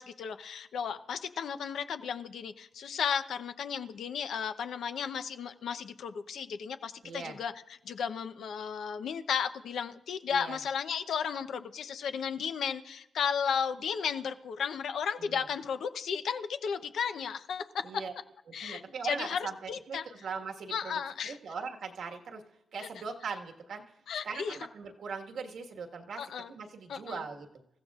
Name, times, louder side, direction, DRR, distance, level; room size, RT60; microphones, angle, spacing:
voice 1, 0.0-7.5 7.8-17.8 18.5-20.0 20.7-21.4 22.8-22.9 24.1-24.6 26.2-26.5 26.9-27.2, left 7 dB, 80° left, 9 dB, 0.8 m, -34 dB
voice 2, 7.0-7.4 10.3-10.6 15.2-15.4 17.8-18.1 18.6-22.4 22.7-23.8 24.2-26.2 26.5-27.6, right 5 dB, 75° right, 3 dB, 1.6 m, -40 dB
27.0 x 15.0 x 2.5 m, 0.83 s
cardioid pair, 110°, 0 cm